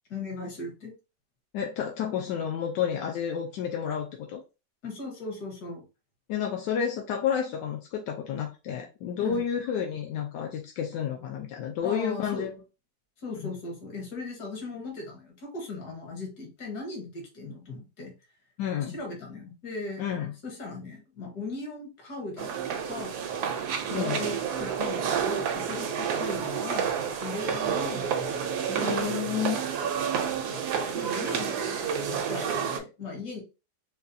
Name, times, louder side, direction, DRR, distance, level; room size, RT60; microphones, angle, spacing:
voice 1, 0.1-0.9 4.8-5.8 9.2-9.4 11.8-12.5 13.2-18.1 18.9-20.0 20.4-23.2 23.9-28.1 29.9-30.1 30.5-33.4, left 3 dB, 70° left, 1 dB, 1.7 m, -38 dB
voice 2, 1.5-4.4 6.3-12.6 13.4-13.5 18.6-19.0 20.0-20.3 23.9-24.2 27.8-28.0 28.7-29.6, left 8 dB, 85° left, 1 dB, 1.2 m, -30 dB
sound 1, 22.4-32.8, right 7 dB, 75° right, 1.1 m, -30 dB
4.0 x 2.3 x 2.6 m, 0.30 s
omnidirectional pair, 1.8 m